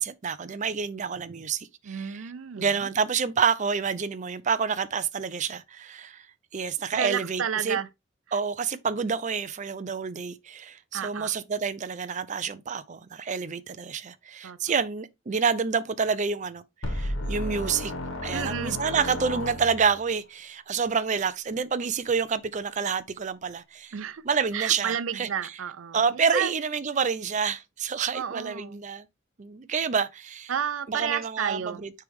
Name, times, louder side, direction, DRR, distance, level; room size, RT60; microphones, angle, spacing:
voice 1, 0.0-2.3 2.6-6.3 6.5-7.8 8.3-17.9 18.2-23.9 24.2-25.5 25.9-29.0 29.4-30.5 30.9-31.9, right 6 dB, 40° right, 0.5 m, -28 dB
voice 2, 1.8-2.9 6.9-7.9 10.9-11.3 14.4-14.6 18.3-18.8 23.9-24.2 24.5-26.5 28.1-28.8 30.5-31.9, right 8 dB, 90° right, 0.5 m, -31 dB
sound 1, 16.8-20.1, left 1 dB, 75° left, 1.6 m, -33 dB
9.2 x 3.4 x 3.4 m
head